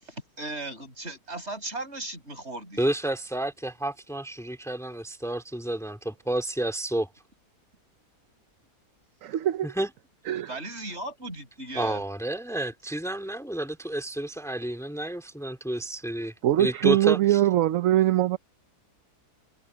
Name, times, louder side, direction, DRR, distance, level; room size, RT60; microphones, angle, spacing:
voice 1, 0.0-2.9 10.5-12.0, right 2 dB, 40° right, 6.5 m, -37 dB
voice 2, 2.8-7.1 9.6-9.9 11.7-17.4, right 1 dB, ahead, 2.9 m, -30 dB
voice 3, 9.2-9.7 10.3-10.5 16.4-18.4, right 13 dB, 65° right, 0.9 m, -22 dB
omnidirectional pair, 1.7 m